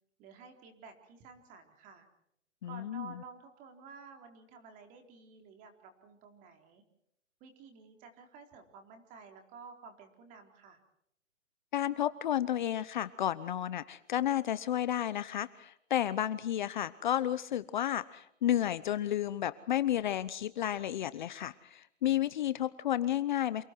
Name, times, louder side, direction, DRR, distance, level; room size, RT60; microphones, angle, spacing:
voice 1, 0.2-2.0 2.6-6.8 7.4-10.8, right 5 dB, 20° right, 5 dB, 4.0 m, -52 dB
voice 2, 2.6-3.1 11.7-23.6, left 11 dB, 40° left, 15 dB, 0.9 m, -32 dB
29.0 x 28.0 x 4.6 m, 0.73 s
hypercardioid pair, 155°, 37 cm